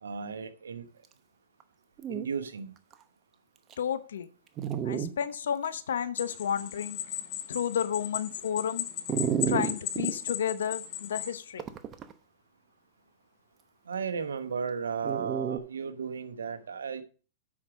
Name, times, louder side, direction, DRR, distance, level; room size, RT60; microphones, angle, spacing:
voice 1, 0.0-0.9 2.1-2.7 13.9-17.0, right 6 dB, 80° right, 9 dB, 1.0 m, -34 dB
Dog, 1.6-1.7 2.0-2.3 2.9-3.0 3.7-3.8 4.6-5.1 5.7-5.8 9.1-10.1 11.6-12.1 15.0-15.6, right 8 dB, 30° right, 0.9 m, -30 dB
voice 2, 3.8-4.3 4.8-7.0 7.5-8.9 9.5-11.6, left 8 dB, 75° left, 13 dB, 0.8 m, -31 dB
sound 1, 6.2-11.4, left 12 dB, 45° left, 4.3 m, -37 dB
8.6 x 6.2 x 5.1 m, 0.39 s
hypercardioid pair, 110°, 0 cm